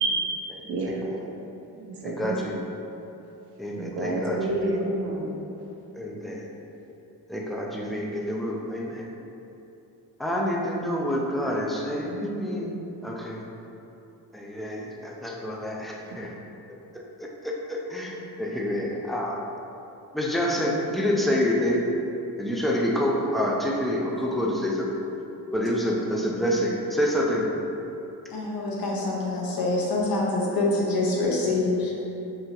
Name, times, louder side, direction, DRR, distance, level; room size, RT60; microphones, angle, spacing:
voice 1, 0.0-1.0 1.8-2.6 3.8-5.4, right 2 dB, 85° right, -1 dB, 0.8 m, -29 dB
voice 2, 2.0-2.5 3.6-4.4 6.0-6.4 7.3-9.0 10.2-12.7 13.0-13.4 14.3-16.3 17.2-19.4 20.1-21.9 22.4-24.9 25.5-27.4, equal, ahead, -3 dB, 0.4 m, -27 dB
voice 3, 28.3-32.0, left 2 dB, 65° left, -4 dB, 1.0 m, -25 dB
5.5 x 2.9 x 2.9 m, 3.0 s
cardioid pair, 115°, 38 cm